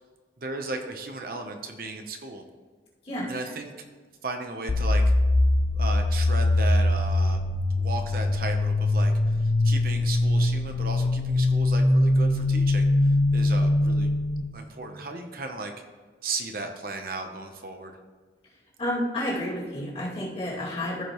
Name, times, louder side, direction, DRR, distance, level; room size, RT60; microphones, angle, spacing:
voice 1, 0.4-2.4 3.3-3.7 4.2-5.0 5.7-7.4 7.8-14.1 14.5-15.7 16.2-18.0, right 3 dB, 50° right, 4 dB, 0.8 m, -35 dB
sound 1, 4.7-14.4, left 2 dB, 55° left, 0.6 m, -22 dB
voice 2, 18.8-21.0, left 1 dB, 35° left, -6 dB, 2.4 m, -30 dB
14.5 x 5.0 x 3.0 m, 1.5 s
head